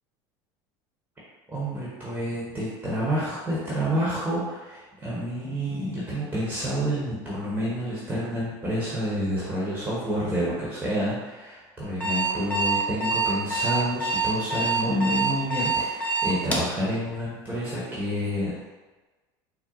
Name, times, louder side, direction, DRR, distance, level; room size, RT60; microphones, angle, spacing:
voice 1, 1.5-18.5, equal, 15° right, -7 dB, 1.1 m, -29 dB
Alarm, 11.8-16.7, right 3 dB, 15° left, 0.7 m, -25 dB
4.5 x 2.0 x 3.7 m, 1.2 s
supercardioid pair, 115°, 12 cm